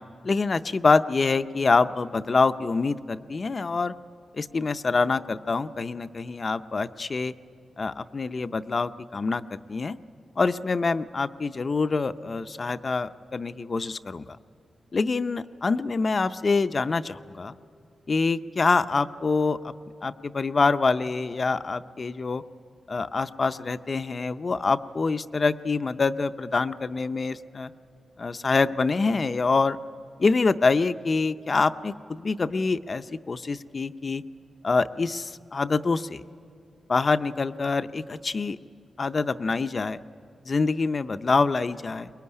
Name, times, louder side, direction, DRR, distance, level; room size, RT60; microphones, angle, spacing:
voice 1, 0.2-3.9 4.3-7.3 7.8-10.0 10.4-14.4 14.9-17.5 18.1-19.7 20.0-22.4 22.9-27.7 28.2-29.8 30.2-34.2 34.6-36.2 36.9-38.6 39.0-40.0 40.5-42.1, left 4 dB, 35° left, 12 dB, 0.6 m, -25 dB
23.5 x 21.5 x 9.8 m, 2.4 s
wide cardioid pair, 140°, 0 cm